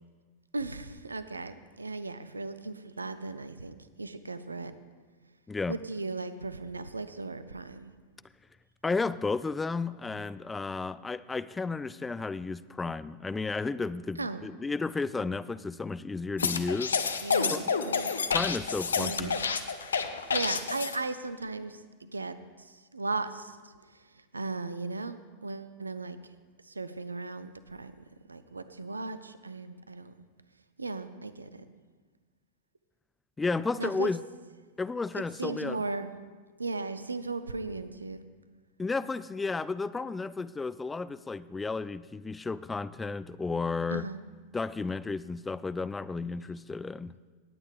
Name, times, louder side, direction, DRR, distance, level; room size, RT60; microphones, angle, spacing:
voice 1, 0.5-4.7 5.7-7.9 14.2-14.4 17.2-17.5 17.8-18.1 19.0-19.4 20.3-25.2 25.4-26.2 26.6-27.9 28.3-30.1 30.8-31.6 33.8-34.1 35.1-36.1 36.6-38.2 43.9-44.2, right 3 dB, 80° right, 12 dB, 0.5 m, -37 dB
voice 2, 8.8-17.0 17.5-17.6 18.3-19.3 33.4-34.2 34.8-35.8 38.8-44.1 44.5-47.1, left 4 dB, 10° left, 16 dB, 0.3 m, -33 dB
sound 1, 16.4-21.0, left 5 dB, 70° left, 0.6 m, -29 dB
17.5 x 8.6 x 3.4 m, 1.4 s
figure-of-eight pair, 90°, 0 cm